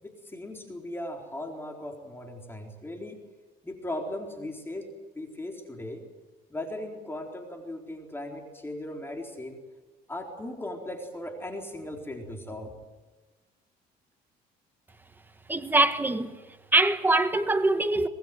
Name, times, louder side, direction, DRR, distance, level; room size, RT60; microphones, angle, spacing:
voice 1, 0.0-3.2 3.6-4.9 5.2-6.0 6.5-9.6 10.1-12.7, left 1 dB, 15° left, 4.0 m, -38 dB
voice 2, 15.5-16.3 16.7-18.1, right 2 dB, 10° right, 1.7 m, -23 dB
25.5 x 19.0 x 9.2 m
cardioid pair, 110°, 17 cm